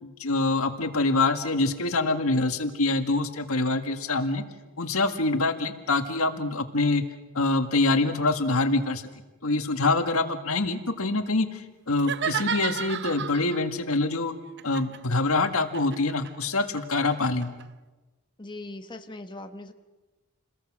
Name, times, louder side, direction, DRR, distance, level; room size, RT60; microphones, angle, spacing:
voice 1, 0.0-4.4 4.8-7.0 7.3-9.1 9.4-14.3 14.6-17.5, left 2 dB, 80° left, 7 dB, 1.9 m, -25 dB
sound 1, 12.0-13.7 14.6-17.6, right 8 dB, 55° right, 0.8 m, -33 dB
voice 2, 18.4-19.7, left 2 dB, 20° left, 6 dB, 1.1 m, -40 dB
29.5 x 21.0 x 6.2 m, 1.2 s
head